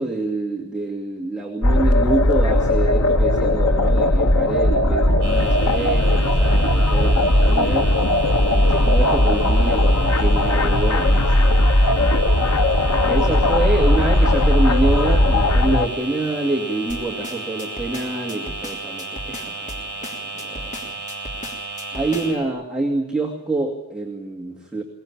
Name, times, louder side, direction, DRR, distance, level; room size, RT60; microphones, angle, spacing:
voice 1, 0.0-8.0 8.5-11.5 12.0-12.2 13.0-20.9 21.9-24.8, right 2 dB, 5° right, -1 dB, 2.3 m, -26 dB
sound 1, 1.6-15.9, left 1 dB, 85° left, 1.3 m, -17 dB
sound 2, 5.2-22.3, right 2 dB, 50° right, 7.5 m, -33 dB
sound 3, 16.9-22.5, left 1 dB, 35° left, 3.3 m, -36 dB
22.5 x 20.0 x 8.8 m, 0.88 s
head